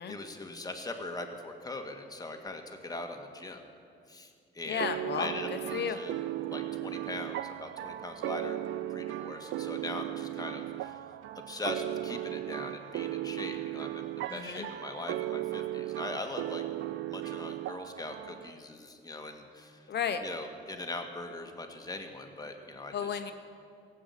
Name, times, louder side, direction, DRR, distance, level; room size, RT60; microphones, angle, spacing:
voice 1, 0.1-3.6 4.1-4.3 4.5-4.9 5.1-6.1 6.5-8.6 8.9-11.0 11.5-16.6 17.1-19.8 20.2-23.2, left 2 dB, 20° left, 4 dB, 1.7 m, -41 dB
voice 2, 4.7-6.0 14.3-14.7 19.9-20.2 22.9-23.3, left 7 dB, 60° left, 8 dB, 1.1 m, -33 dB
sound 1, 4.8-18.5, right 14 dB, 75° right, 0.4 m, -36 dB
17.0 x 8.1 x 8.4 m, 2.4 s
cardioid pair, 90°, 20 cm